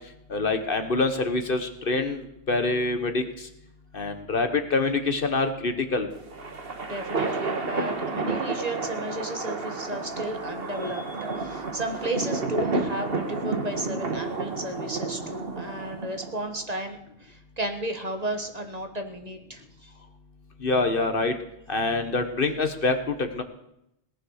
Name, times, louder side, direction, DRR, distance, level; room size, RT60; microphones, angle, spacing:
voice 1, 0.3-3.5 3.9-6.1 20.6-21.3 21.7-23.4, left 3 dB, 55° left, 8 dB, 1.4 m, -25 dB
sound 1, 6.1-16.6, right 3 dB, 60° right, 1.6 m, -31 dB
voice 2, 6.8-19.9, right 1 dB, 35° right, 5 dB, 1.5 m, -33 dB
18.0 x 9.9 x 6.5 m, 0.82 s
omnidirectional pair, 1.1 m